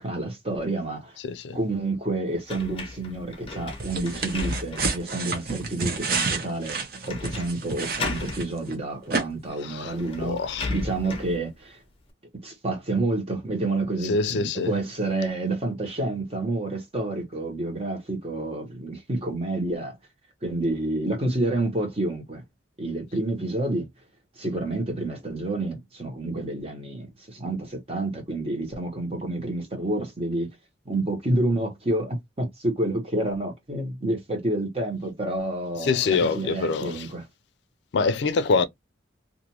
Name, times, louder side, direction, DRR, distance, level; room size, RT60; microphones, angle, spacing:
voice 1, 0.0-1.2 1.5-6.8 7.1-11.8 12.4-20.0 20.4-22.4 22.8-23.9 24.4-30.5 30.8-37.2, right 2 dB, 30° right, 1.1 m, -29 dB
voice 2, 1.2-1.6 9.6-10.7 14.0-14.7 35.8-37.1 37.9-38.7, left 4 dB, 70° left, 0.4 m, -25 dB
sound 1, 2.5-5.0 5.6-5.7 7.1-7.5 7.8-8.4 9.5-9.6 9.9-11.4, left 3 dB, 30° left, 0.7 m, -34 dB
sound 2, 3.8-8.7 9.1-9.2, right 4 dB, 50° right, 0.7 m, -29 dB
2.5 x 2.5 x 2.8 m
head